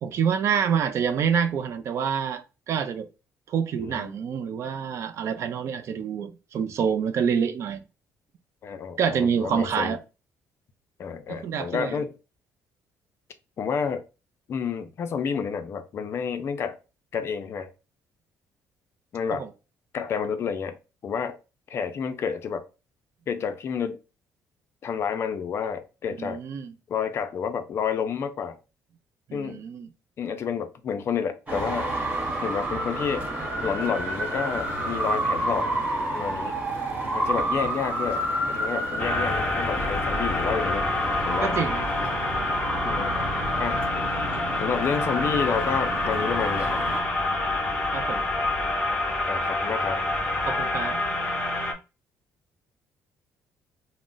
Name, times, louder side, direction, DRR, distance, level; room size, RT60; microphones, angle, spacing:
voice 1, 0.0-3.1 3.5-7.8 9.0-10.0 11.3-12.0 19.3-19.5 26.2-26.7 29.3-29.9 37.0-37.3 41.4-41.9 47.9-48.3 50.4-51.0, right 7 dB, 50° right, 0.4 m, -27 dB
voice 2, 3.8-4.1 8.6-10.0 11.0-12.1 13.6-14.0 14.5-16.8 17.1-17.7 19.1-19.5 19.9-20.8 21.0-21.4 21.7-22.6 23.3-24.0 24.8-26.4 26.9-28.6 29.3-29.6 30.2-31.9 32.4-33.2 33.6-35.7 36.1-36.5 37.1-40.9 41.2-41.6 42.8-43.1 43.6-43.8 44.6-46.8 48.6-48.8 49.3-50.0, left 6 dB, 45° left, 0.4 m, -30 dB
Traffic noise roadway noise, 31.5-47.0, right 1 dB, 25° right, 1.1 m, -30 dB
sound 1, 39.0-51.7, left 2 dB, 15° left, 0.7 m, -27 dB
2.4 x 2.0 x 3.8 m
cardioid pair, 135°, 6 cm